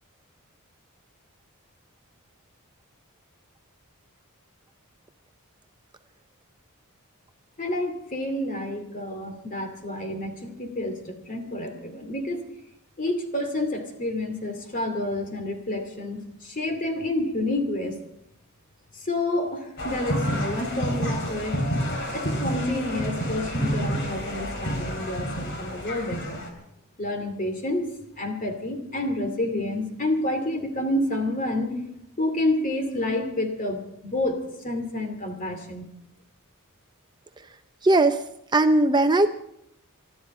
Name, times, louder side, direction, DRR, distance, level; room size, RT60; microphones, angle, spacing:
voice 1, 7.6-12.4 13.0-18.0 18.9-21.6 22.1-26.4 27.0-31.8 32.2-35.9, left 1 dB, 35° left, 6 dB, 2.5 m, -29 dB
sound 1, 19.8-26.5, equal, 55° left, 3.2 m, -29 dB
voice 2, 37.8-38.2 38.5-39.3, right 2 dB, 20° right, 8 dB, 0.5 m, -18 dB
25.0 x 12.5 x 4.3 m, 0.80 s
head